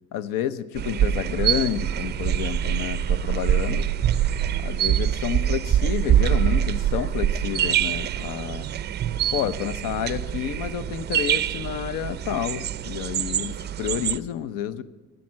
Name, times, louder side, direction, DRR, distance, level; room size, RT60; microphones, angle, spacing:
voice 1, 0.1-3.9 4.6-8.7 9.3-14.8, left 10 dB, 80° left, 16 dB, 0.8 m, -30 dB
sound 1, 0.7-14.2, right 10 dB, 30° right, 0.5 m, -24 dB
14.0 x 13.5 x 7.5 m, 1.2 s
cardioid pair, 140°, 32 cm